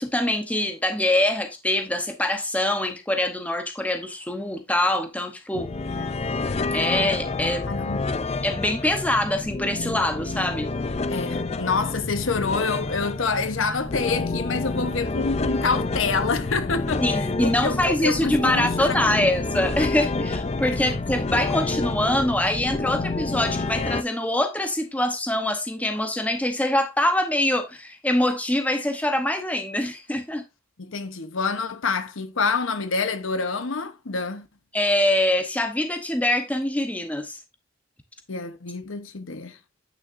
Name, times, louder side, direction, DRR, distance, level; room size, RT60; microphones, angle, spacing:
voice 1, 0.0-5.7 6.7-7.7 8.4-10.7 17.0-30.4 34.7-37.4, left 1 dB, 5° left, 0.8 m, -24 dB
sound 1, 5.5-24.0, left 3 dB, 30° left, 0.4 m, -28 dB
voice 2, 7.7-8.1 11.1-19.3 20.7-20.8 30.8-34.5 38.3-39.6, left 4 dB, 70° left, 0.9 m, -27 dB
9.2 x 6.4 x 2.6 m
head